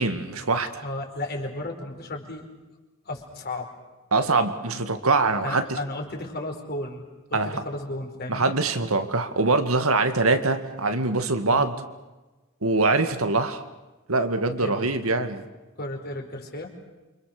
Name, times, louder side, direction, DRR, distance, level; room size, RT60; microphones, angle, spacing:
voice 1, 0.0-0.8 4.1-5.8 7.3-7.5 8.3-11.8 12.6-13.6 14.1-15.4, right 3 dB, 80° right, 8 dB, 2.1 m, -23 dB
voice 2, 0.8-2.5 3.0-3.7 5.4-8.5 11.5-11.7 14.6-14.9 15.8-16.7, left 1 dB, 50° left, 2 dB, 4.9 m, -34 dB
28.5 x 25.5 x 6.7 m, 1.1 s
head